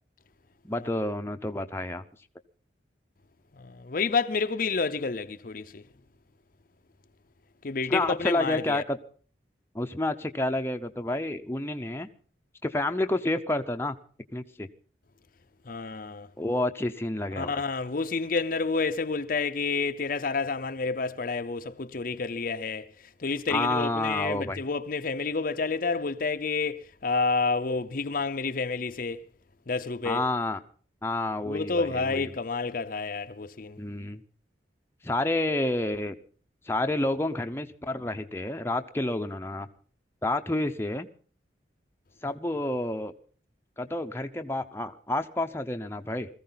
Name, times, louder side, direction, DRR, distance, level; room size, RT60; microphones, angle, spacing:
voice 1, 0.6-2.0 7.9-9.0 9.7-12.1 12.6-14.0 14.3-14.7 16.4-17.6 23.5-24.6 30.0-30.6 31.0-32.3 33.8-34.2 35.0-36.1 36.7-39.7 40.2-41.1 42.2-43.1 43.8-46.3, left 1 dB, 15° left, 0.7 m, -29 dB
voice 2, 3.6-5.8 7.6-8.8 15.7-16.3 17.4-22.9 23.2-29.2 29.7-30.2 31.4-33.8, left 4 dB, 50° left, 0.7 m, -29 dB
21.0 x 14.5 x 4.0 m
head